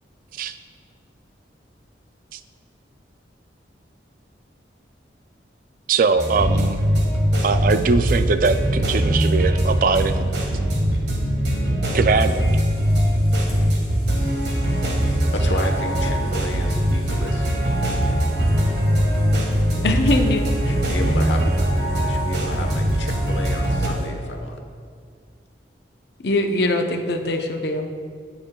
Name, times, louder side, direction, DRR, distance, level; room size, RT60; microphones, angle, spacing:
voice 1, 5.9-6.8 7.4-10.3 11.9-12.5, right 4 dB, 50° right, 11 dB, 0.3 m, -21 dB
sound 1, 6.2-23.9, equal, 70° right, 1.6 m, -21 dB
sound 2, 12.1-24.1, right 1 dB, 15° right, 1.7 m, -36 dB
voice 2, 15.3-17.5 20.6-21.5 22.0-24.6, left 2 dB, 85° left, 3 dB, 1.1 m, -32 dB
voice 3, 19.8-20.4 26.2-27.9, left 2 dB, 65° left, 4 dB, 0.7 m, -22 dB
17.0 x 6.6 x 2.3 m, 2.1 s
head